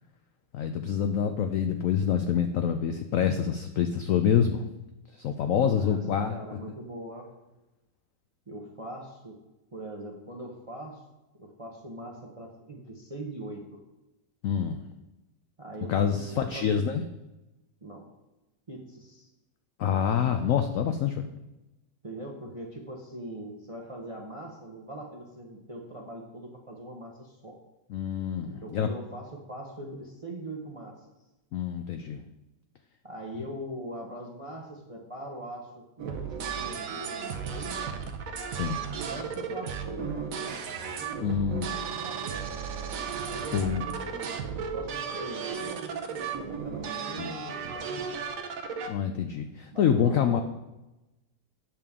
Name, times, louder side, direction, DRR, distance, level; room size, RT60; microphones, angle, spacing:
voice 1, 0.5-4.7 5.1-6.3 14.4-14.8 15.9-17.0 19.8-21.2 27.9-28.9 31.5-32.2 38.5-38.8 41.2-41.7 43.5-43.9 47.1-47.3 48.9-50.4, left 8 dB, 75° left, 7 dB, 0.7 m, -26 dB
voice 2, 6.3-7.3 8.5-9.4 9.7-11.0 11.4-13.8 15.6-16.8 17.8-18.1 18.7-19.3 22.0-27.6 28.4-31.1 33.0-38.0 38.9-40.5 40.9-42.5 43.2-48.4 49.7-50.4, right 1 dB, 35° right, 0 dB, 0.6 m, -42 dB
sound 1, 36.0-48.9, right 6 dB, 60° right, 1.0 m, -34 dB
8.5 x 6.9 x 3.6 m, 1.0 s
omnidirectional pair, 1.9 m